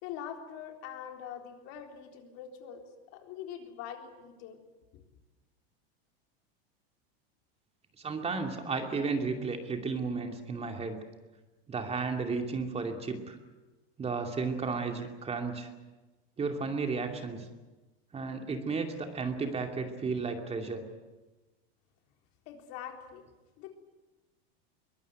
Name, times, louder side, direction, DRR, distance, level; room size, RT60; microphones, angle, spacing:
voice 1, 0.0-2.8 3.1-4.6 4.9-5.0 22.5-23.2 23.6-23.7, left 9 dB, 55° left, 4 dB, 4.0 m, -43 dB
voice 2, 8.0-11.0 11.7-13.4 14.0-15.7 16.4-17.4 18.1-20.8, right 4 dB, 20° right, 5 dB, 2.6 m, -33 dB
22.5 x 20.0 x 9.5 m, 1.2 s
supercardioid pair, 130°, 31 cm